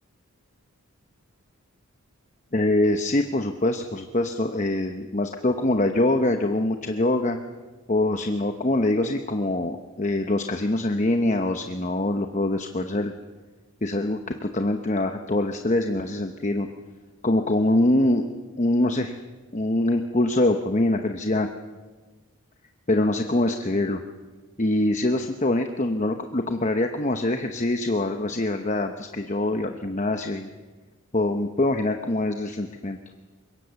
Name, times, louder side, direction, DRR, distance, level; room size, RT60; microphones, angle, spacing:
voice 1, 2.5-7.4 7.9-13.1 13.8-16.7 17.2-18.2 18.6-19.1 19.5-21.5 22.9-24.0 24.6-30.5 31.1-33.0, left 1 dB, 30° left, 6 dB, 0.9 m, -24 dB
25.0 x 22.0 x 7.1 m, 1.3 s
head